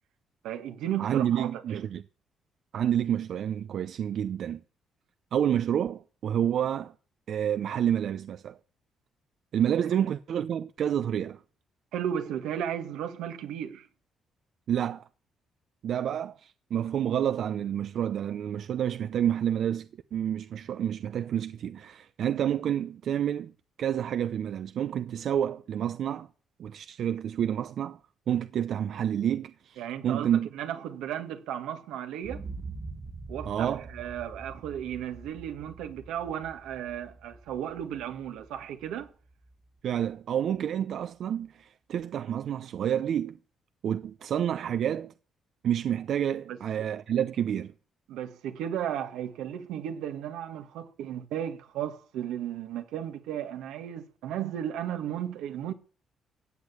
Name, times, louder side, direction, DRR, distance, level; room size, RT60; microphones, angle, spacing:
voice 1, 0.4-1.9 11.9-13.9 29.8-30.3 30.5-32.5 33.3-39.1 46.5-46.6 48.1-55.7, right 10 dB, 90° right, 1.7 m, -35 dB
voice 2, 1.0-2.0 2.7-4.6 5.3-6.9 7.3-8.6 9.5-11.4 14.7-15.1 15.8-23.5 23.8-26.3 26.6-28.0 28.3-30.5 33.5-33.9 39.8-43.4 43.8-45.1 45.6-47.7, right 9 dB, 65° right, 0.7 m, -29 dB
sound 1, 32.2-40.1 40.5-40.6, right 3 dB, 30° right, 1.7 m, -44 dB
15.0 x 8.3 x 8.5 m
cardioid pair, 90°, 0 cm